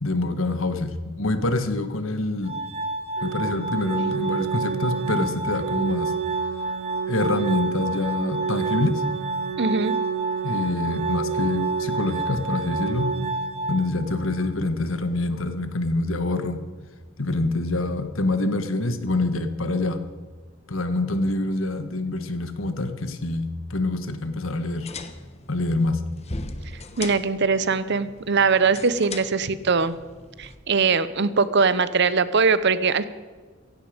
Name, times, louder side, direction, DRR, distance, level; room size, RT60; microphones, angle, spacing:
voice 1, 0.0-2.6 3.2-6.1 7.1-9.0 10.4-13.1 13.7-16.6 17.2-20.0 20.7-24.9 25.5-26.0, left 2 dB, 70° left, 9 dB, 1.5 m, -26 dB
Glass, 2.4-14.5, right 2 dB, 30° right, 0.9 m, -30 dB
Organ, 3.2-14.2, right 9 dB, 85° right, 0.5 m, -31 dB
voice 2, 9.6-9.9 27.0-29.9 30.4-33.0, right 5 dB, 55° right, 15 dB, 0.8 m, -21 dB
sound 1, 24.6-30.6, left 3 dB, 30° left, 1.1 m, -39 dB
16.5 x 16.0 x 5.2 m, 1.4 s
head